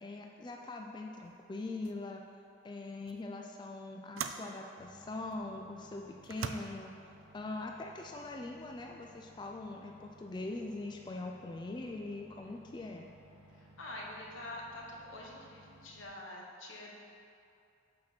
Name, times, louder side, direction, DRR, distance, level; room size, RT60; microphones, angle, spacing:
voice 1, 0.0-2.2 2.6-6.9 7.3-13.1, left 2 dB, 25° left, 1 dB, 0.3 m, -42 dB
sound 1, 1.2-1.4 1.8-2.1 3.1-3.2 4.2-4.5 5.3-5.4 6.2-6.5, right 7 dB, 90° right, 0.4 m, -40 dB
sound 2, 4.8-16.1, equal, 30° right, 1.0 m, -60 dB
voice 2, 12.4-12.9 13.5-17.1, left 1 dB, 85° left, -2 dB, 1.2 m, -47 dB
6.2 x 4.3 x 6.0 m, 2.6 s
head